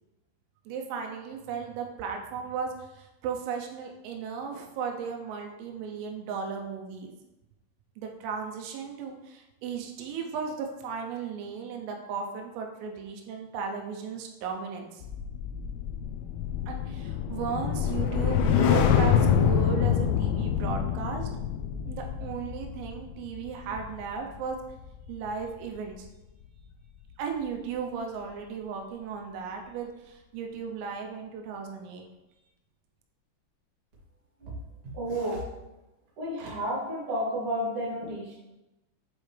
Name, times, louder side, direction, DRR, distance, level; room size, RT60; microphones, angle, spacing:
voice 1, 0.7-7.1 8.0-15.0 16.7-21.3 21.9-24.6 25.1-26.1 27.2-32.0, right 6 dB, 85° right, 3 dB, 3.3 m, -35 dB
sound 1, 15.0-25.4 25.8-26.1, left 8 dB, 85° left, 3.1 m, -27 dB
voice 2, 34.9-35.4 36.2-38.4, equal, 40° right, -7 dB, 2.0 m, -31 dB
9.5 x 4.4 x 3.3 m, 0.98 s
omnidirectional pair, 5.8 m